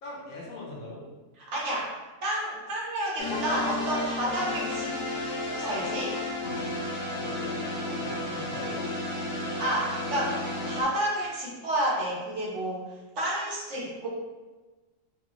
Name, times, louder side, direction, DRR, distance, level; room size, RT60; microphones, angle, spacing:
voice 1, 0.0-1.0 7.2-8.9, left 2 dB, 85° left, -3 dB, 1.4 m, -41 dB
voice 2, 1.5-4.9 5.5-6.1 9.6-12.9 13.2-14.1, right 1 dB, 65° right, -5 dB, 1.3 m, -30 dB
sound 1, 3.2-10.8, left 2 dB, 50° left, 1.1 m, -32 dB
3.8 x 2.7 x 3.0 m, 1.2 s
omnidirectional pair, 1.4 m